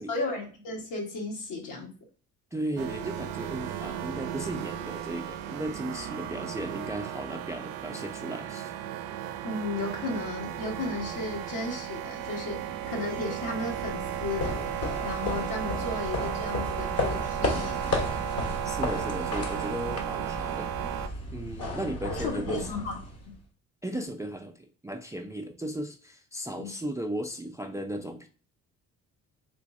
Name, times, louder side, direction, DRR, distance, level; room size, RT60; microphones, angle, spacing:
voice 1, 0.1-1.9 9.4-17.8 22.1-23.0 23.2-23.3 26.6-26.7, left 2 dB, 65° left, 0 dB, 1.4 m, -34 dB
voice 2, 2.5-8.7 18.6-21.1 21.3-22.7 23.8-28.3, right 1 dB, 10° right, 5 dB, 0.4 m, -36 dB
sound 1, 2.8-21.1, right 10 dB, 75° right, 0.5 m, -35 dB
sound 2, 13.8-23.4, left 2 dB, 40° left, 1.1 m, -34 dB
3.5 x 3.0 x 2.6 m, 0.39 s
supercardioid pair, 65°, 35 cm